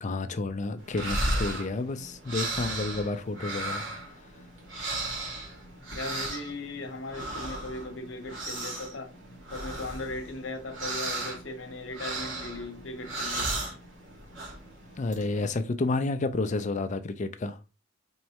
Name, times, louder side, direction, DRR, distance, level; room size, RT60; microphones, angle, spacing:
voice 1, 0.0-3.8 15.0-17.6, left 3 dB, 40° left, 0.4 m, -30 dB
sound 1, 0.8-15.5, right 2 dB, 80° right, 1.9 m, -36 dB
voice 2, 5.9-9.1 9.5-13.6, left 2 dB, 75° left, 0.9 m, -38 dB
4.6 x 3.1 x 2.8 m
head